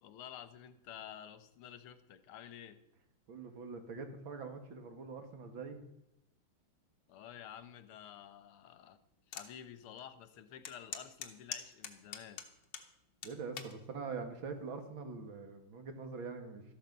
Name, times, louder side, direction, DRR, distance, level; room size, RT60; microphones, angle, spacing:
voice 1, 0.0-2.8 7.1-9.0 9.3-12.4, left 10 dB, 85° left, 12 dB, 1.8 m, -51 dB
voice 2, 3.3-5.8 13.2-16.6, right 4 dB, 70° right, 6 dB, 2.5 m, -44 dB
sound 1, 9.3-9.5 10.0-10.1 10.6-12.9 13.2-13.7 14.5-14.8, left 7 dB, 60° left, 1.8 m, -43 dB
13.5 x 12.0 x 5.4 m, 0.83 s
omnidirectional pair, 2.3 m